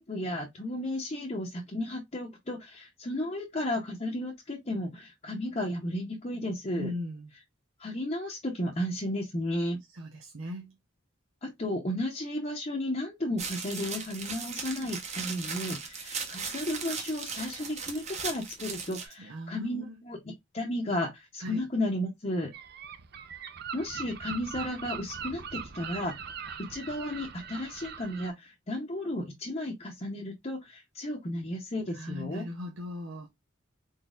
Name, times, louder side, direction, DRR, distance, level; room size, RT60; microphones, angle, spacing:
voice 1, 0.0-6.9 7.8-9.8 11.4-22.5 23.7-26.1 26.7-32.5, left 1 dB, 35° left, 0.8 m, -33 dB
voice 2, 6.7-7.3 9.9-10.8 19.2-20.0 21.4-21.6 31.9-33.3, left 1 dB, 85° right, 0.8 m, -38 dB
sound 1, 13.4-19.1, right 5 dB, 35° right, 0.9 m, -37 dB
Gull seagull, 22.5-28.3, right 6 dB, 50° right, 0.6 m, -41 dB
4.0 x 4.0 x 2.4 m
head